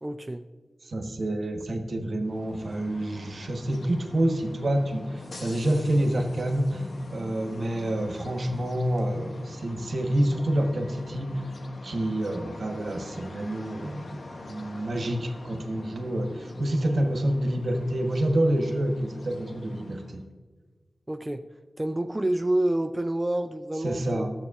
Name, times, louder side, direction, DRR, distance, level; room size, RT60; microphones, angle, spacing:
voice 1, 0.0-0.4 21.1-21.5 21.8-24.3, right 1 dB, 20° right, 6 dB, 0.4 m, -28 dB
voice 2, 0.8-11.4 11.8-14.2 14.4-20.2 23.8-24.3, right 1 dB, 70° right, 4 dB, 1.1 m, -28 dB
sound 1, 2.1-20.2, left 2 dB, 65° left, 0.9 m, -44 dB
12.0 x 7.4 x 2.4 m, 1.4 s
cardioid pair, 50°, 0 cm